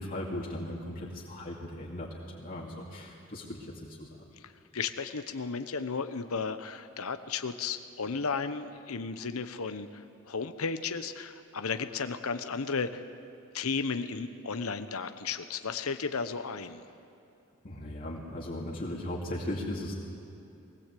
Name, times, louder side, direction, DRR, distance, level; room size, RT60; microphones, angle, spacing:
voice 1, 0.0-4.2 17.6-20.0, left 1 dB, 40° left, -4 dB, 2.4 m, -37 dB
voice 2, 4.4-13.0 13.5-16.8, left 5 dB, 75° left, 10 dB, 0.9 m, -34 dB
23.0 x 17.0 x 8.4 m, 2.8 s
head